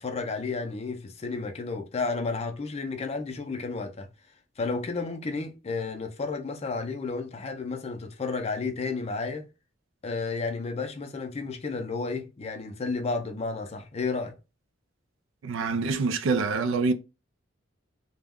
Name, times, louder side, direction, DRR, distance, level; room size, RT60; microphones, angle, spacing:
voice 1, 0.0-4.1 4.6-9.5 10.0-14.3, left 4 dB, 35° left, 0.4 m, -32 dB
voice 2, 15.4-16.9, right 4 dB, 80° right, 0.4 m, -25 dB
2.2 x 2.1 x 3.5 m
head